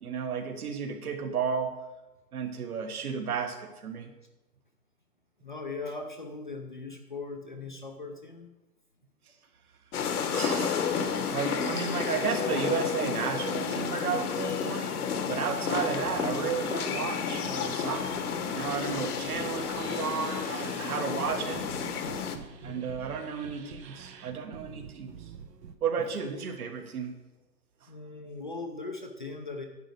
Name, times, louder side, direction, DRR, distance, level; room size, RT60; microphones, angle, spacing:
voice 1, 0.0-1.7 2.3-4.1 10.3-14.9 15.3-21.6 22.6-25.1 25.8-27.1, right 6 dB, 60° right, 6 dB, 1.6 m, -33 dB
voice 2, 5.4-8.5 10.3-10.7 22.1-22.9 27.9-29.7, left 3 dB, 30° left, 4 dB, 0.5 m, -40 dB
sound 1, 9.9-22.4, left 6 dB, 65° left, 1.2 m, -31 dB
sound 2, 19.3-25.7, right 7 dB, 80° right, 1.1 m, -47 dB
10.5 x 4.6 x 6.7 m, 1.1 s
hypercardioid pair, 165°, 50 cm